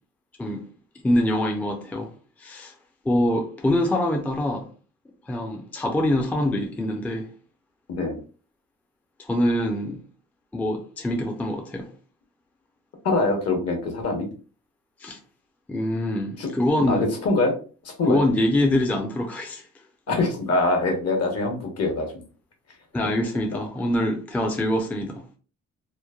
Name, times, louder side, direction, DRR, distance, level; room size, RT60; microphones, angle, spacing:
voice 1, 1.0-2.1 2.4-2.7 3.0-4.7 5.3-7.3 9.2-10.0 10.5-11.9 15.0-15.2 15.7-17.1 18.0-19.6 22.9-25.2, left 1 dB, 5° left, 0.4 m, -24 dB
voice 2, 13.0-14.3 16.4-16.5 16.9-17.5 18.0-18.2 20.1-22.2, left 2 dB, 55° left, 1.1 m, -23 dB
3.0 x 2.0 x 2.3 m
cardioid pair, 90°, 30 cm